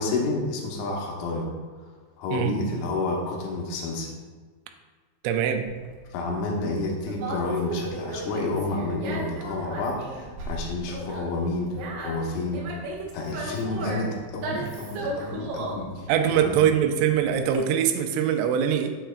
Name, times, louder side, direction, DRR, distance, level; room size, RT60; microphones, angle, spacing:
voice 1, 0.0-1.5 2.2-4.2 6.1-12.8 13.1-16.6, left 2 dB, 80° left, 0 dB, 3.5 m, -30 dB
voice 2, 2.3-2.6 5.2-5.7 14.5-14.7 16.1-18.9, right 9 dB, 90° right, 5 dB, 3.2 m, -23 dB
Conversation, 5.6-17.6, right 2 dB, 70° right, 3.2 m, -36 dB
8.8 x 7.8 x 2.4 m, 1.5 s
omnidirectional pair, 5.4 m